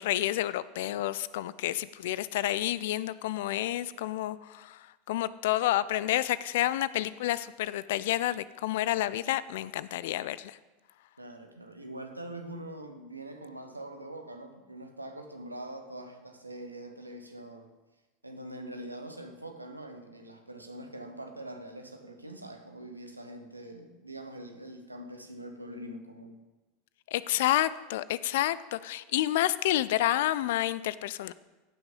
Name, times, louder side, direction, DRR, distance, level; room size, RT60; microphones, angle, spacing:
voice 1, 0.0-4.8 5.1-10.6 27.1-31.3, left 14 dB, 60° left, 17 dB, 0.4 m, -29 dB
voice 2, 11.2-17.7 18.2-26.4, right 1 dB, 90° right, 5 dB, 1.1 m, -43 dB
16.0 x 6.0 x 5.3 m, 1.1 s
figure-of-eight pair, 85°, 0 cm